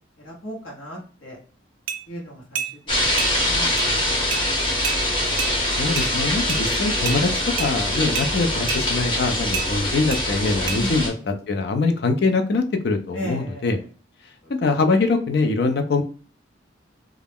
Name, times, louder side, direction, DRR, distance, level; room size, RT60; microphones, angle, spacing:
voice 1, 0.2-1.4 2.1-2.6 3.0-4.5 4.9-5.6 10.8-11.0 13.1-13.7, left 1 dB, 85° left, -3 dB, 1.0 m, -35 dB
sound 1, 1.9-2.0 2.6-2.7 3.2-3.3 3.8-3.9 4.3-4.4 4.8-5.0 5.4-5.5 6.0-6.1 6.5-6.6 7.1-7.2 7.6-7.7 8.2-8.3 8.7-8.8 9.5-9.7 10.1-10.2 10.7-10.8, right 7 dB, 85° right, 0.4 m, -28 dB
sound 2, 2.9-11.1, left 1 dB, 25° left, 0.9 m, -23 dB
voice 2, 5.8-13.8 14.6-16.0, left 3 dB, 55° left, 6 dB, 0.4 m, -23 dB
2.3 x 2.0 x 3.3 m, 0.41 s
head